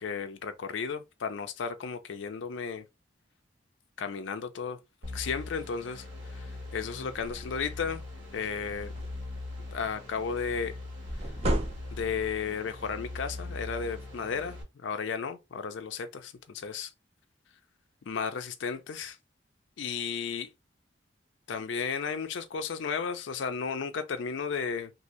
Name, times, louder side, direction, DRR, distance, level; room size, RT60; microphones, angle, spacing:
voice 1, 0.0-2.8 4.0-4.8 5.1-8.0 8.3-8.9 9.6-10.7 11.9-16.9 18.1-19.2 19.8-20.5 21.5-24.9, left 6 dB, 75° left, 0.4 m, -34 dB
sound 1, 5.0-14.6, left 2 dB, 85° right, 1.6 m, -42 dB
sound 2, 7.1-7.4 7.9-8.0 8.3-9.4 11.1-12.3, right 1 dB, 35° right, 0.6 m, -32 dB
2.7 x 2.6 x 3.0 m
head